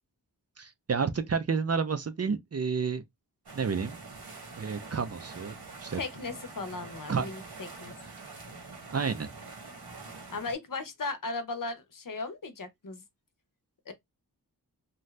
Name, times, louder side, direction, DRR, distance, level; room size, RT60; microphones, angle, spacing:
voice 1, 0.6-3.0 3.5-4.0 4.6-5.5 5.8-6.0 7.1-7.3 8.9-9.3, right 5 dB, 40° right, 0.5 m, -30 dB
sound 1, 3.5-10.5, right 3 dB, 80° right, 1.2 m, -45 dB
voice 2, 5.9-7.9 10.3-13.0 13.9-14.0, left 3 dB, 55° left, 0.7 m, -37 dB
2.6 x 2.3 x 3.2 m
wide cardioid pair, 65°, 39 cm